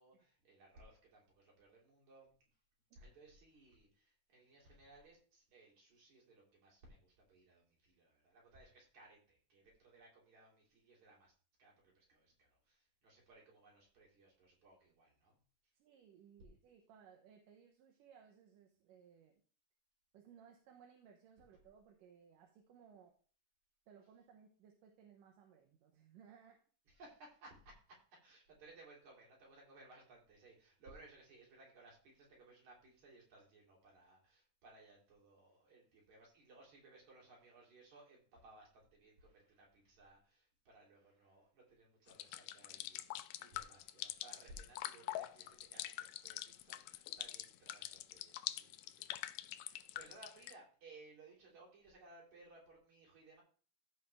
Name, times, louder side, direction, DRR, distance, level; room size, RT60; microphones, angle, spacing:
voice 1, 0.0-2.3 3.0-11.3 11.6-15.4 15.6-15.7 26.9-53.4, right 2 dB, 60° right, -3 dB, 4.7 m, -62 dB
voice 2, 15.8-19.4 20.1-23.1 23.9-26.6, right 7 dB, 80° right, 2 dB, 2.7 m, -62 dB
sound 1, 42.1-50.5, left 14 dB, 90° left, 1.6 m, -45 dB
14.5 x 5.4 x 3.6 m, 0.40 s
omnidirectional pair, 3.8 m